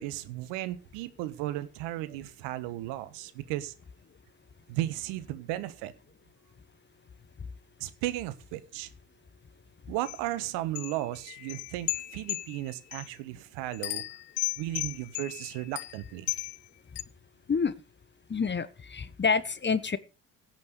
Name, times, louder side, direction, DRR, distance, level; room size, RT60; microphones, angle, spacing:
voice 1, 0.0-3.7 4.7-5.9 7.8-8.9 9.9-14.0 14.6-16.3, right 15 dB, 65° right, 14 dB, 1.5 m, -35 dB
sound 1, 10.0-10.2 10.7-13.1 13.7-16.6 17.0-17.1, left 20 dB, 60° left, 0.9 m, -35 dB
voice 2, 18.3-20.0, left 5 dB, 25° left, 15 dB, 1.2 m, -28 dB
16.5 x 6.1 x 6.7 m, 0.33 s
hypercardioid pair, 55°, 46 cm